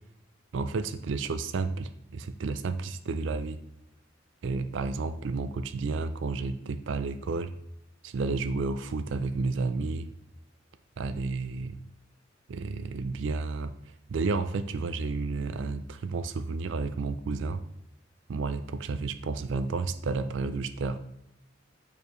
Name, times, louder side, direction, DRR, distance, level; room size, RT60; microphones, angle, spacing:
voice 1, 0.5-3.6 4.4-7.5 8.0-10.1 11.0-11.8 12.5-13.8 14.1-17.6 18.3-21.0, right 3 dB, 70° right, 10 dB, 0.4 m, -31 dB
6.6 x 4.7 x 3.1 m, 0.81 s
head